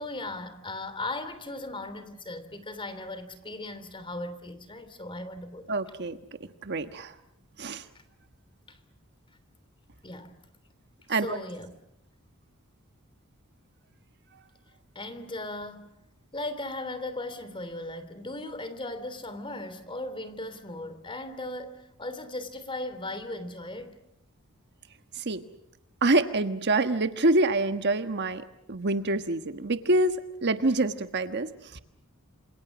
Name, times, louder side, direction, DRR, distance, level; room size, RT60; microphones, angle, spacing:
voice 1, 0.0-5.7 8.7-8.8 10.0-10.3 11.1-11.7 14.9-15.9 16.3-24.0, left 2 dB, 25° left, 11 dB, 3.1 m, -37 dB
voice 2, 5.7-6.2 6.6-7.1 7.6-7.8 11.1-11.4 25.2-25.4 26.0-31.8, right 2 dB, 55° right, 9 dB, 1.4 m, -26 dB
28.0 x 27.5 x 6.3 m, 0.82 s
head